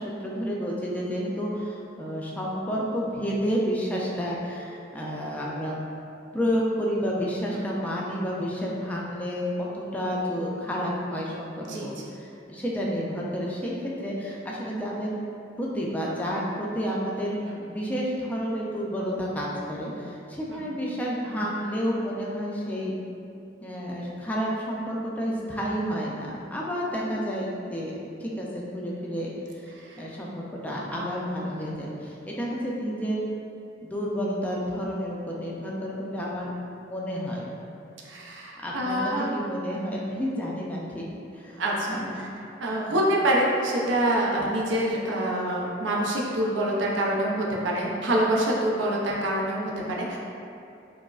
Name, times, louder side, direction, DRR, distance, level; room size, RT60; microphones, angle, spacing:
voice 1, 0.0-5.8 6.3-9.4 9.7-13.7 14.0-15.2 15.6-17.3 17.7-22.9 23.6-29.3 30.0-33.2 33.8-36.5 36.8-37.5 38.6-39.0 39.3-41.1 41.3-41.6 41.9-42.3 42.9-43.0, equal, 10° left, -4 dB, 0.3 m, -30 dB
voice 2, 38.1-39.4 41.6-42.3 42.6-50.2, right 1 dB, 75° right, -3 dB, 0.5 m, -26 dB
4.6 x 2.0 x 2.3 m, 2.6 s
head